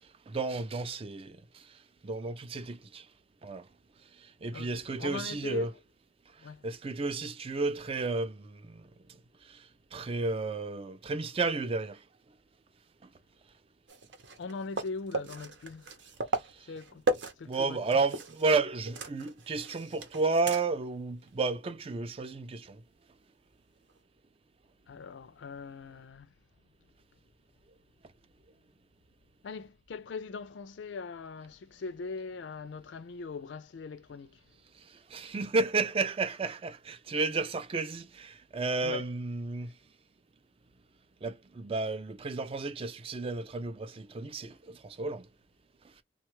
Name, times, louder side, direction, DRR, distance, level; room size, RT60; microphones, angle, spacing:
voice 1, 0.3-1.4 2.0-3.0 3.4-3.6 4.4-5.7 6.6-8.8 9.9-12.0 17.5-22.8 35.1-39.7 41.2-45.3, right 3 dB, 30° right, 0.4 m, -32 dB
voice 2, 4.5-5.7 6.4-6.6 14.4-15.9 16.6-17.0 17.4-18.0 24.9-26.3 29.4-34.4 38.8-39.1, left 4 dB, 80° left, 0.4 m, -41 dB
sound 1, 13.9-18.5 18.8-20.9 21.3-21.4 23.9-24.0, right 2 dB, 80° right, 0.8 m, -36 dB
3.1 x 2.3 x 3.0 m
head